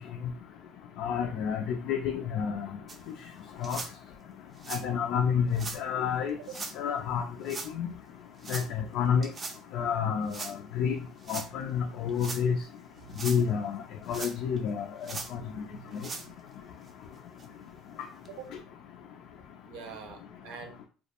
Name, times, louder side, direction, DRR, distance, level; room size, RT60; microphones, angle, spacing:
voice 1, 1.0-2.7 3.6-3.8 4.7-6.3 6.8-7.9 8.5-9.3 9.7-10.3 10.8-11.0 11.3-12.5 13.2-13.8 14.1-14.8, left 7 dB, 65° left, 3 dB, 0.3 m, -29 dB
sound 1, 2.9-3.0 3.6-3.9 4.6-4.8 5.5-5.8 6.5-6.7 7.5-7.7 8.4-8.7 9.2-9.6 10.3-10.5 11.2-11.5 12.1-12.4 13.0-13.4 14.1-14.6 15.0-15.3 15.9-16.3 16.9-17.0 17.4-17.5 18.3-18.4, right 4 dB, 30° right, 0.4 m, -39 dB
voice 2, 15.2-16.3 18.3-18.5 19.6-20.8, right 6 dB, 75° right, 4 dB, 0.6 m, -46 dB
2.3 x 2.1 x 2.9 m, 0.38 s
supercardioid pair, 100°, 0 cm